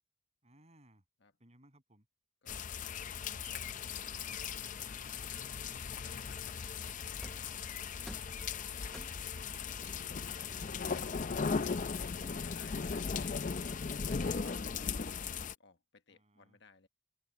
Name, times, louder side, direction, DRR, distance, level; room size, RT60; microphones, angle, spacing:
voice 1, 0.4-1.0 1.4-2.1 7.6-8.4 8.7-10.5 12.1-12.4 16.1-16.6, right 1 dB, 35° right, 7.2 m, -63 dB
voice 2, 2.4-2.9 3.3-6.6 10.8-13.5 14.1-15.2 15.6-16.9, left 4 dB, 60° left, 1.2 m, -60 dB
sound 1, 2.5-15.5, left 5 dB, 40° left, 0.5 m, -38 dB
sound 2, 7.2-7.6 8.1-8.4 8.9-9.4 10.5-11.6 12.2-13.2, equal, 5° left, 0.9 m, -53 dB
open air
head